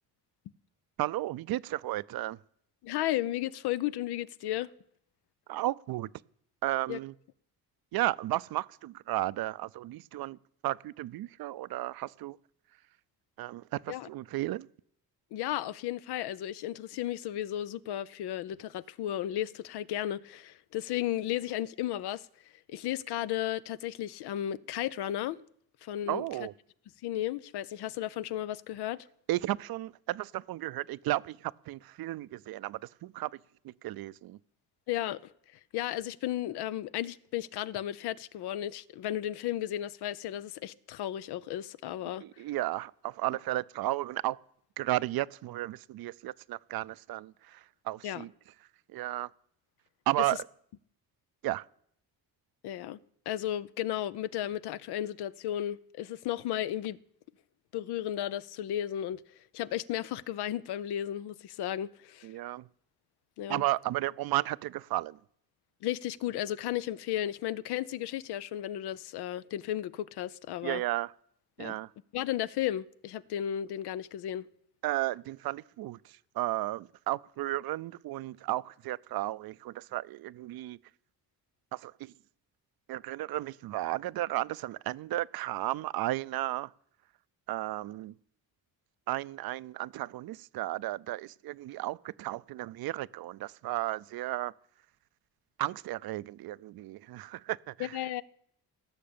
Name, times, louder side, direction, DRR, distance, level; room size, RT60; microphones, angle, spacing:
voice 1, 1.0-2.4 5.5-6.1 6.6-7.1 7.9-10.4 10.6-12.4 13.4-14.7 26.1-26.5 29.3-33.3 33.6-34.4 42.2-44.4 44.8-47.6 47.9-48.3 48.9-49.3 50.1-50.4 51.4-51.6 62.2-62.7 63.5-65.2 70.6-71.1 71.6-71.9 74.8-76.0 76.4-80.8 81.7-82.1 82.9-86.7 87.5-88.1 89.1-94.5 95.6-97.9, right 16 dB, 70° right, 0.5 m, -33 dB
voice 2, 2.8-4.7 6.9-7.0 13.9-14.1 15.3-22.3 22.7-25.4 25.8-26.5 27.0-29.1 34.9-35.3 35.7-42.2 48.0-48.3 50.2-50.3 52.6-53.0 53.3-57.0 57.7-59.2 59.5-62.3 63.4-63.6 65.8-70.8 71.6-71.8 72.1-74.5 97.8-98.2, left 12 dB, 90° left, 0.7 m, -34 dB
16.5 x 6.7 x 8.7 m
cardioid pair, 105°, 38 cm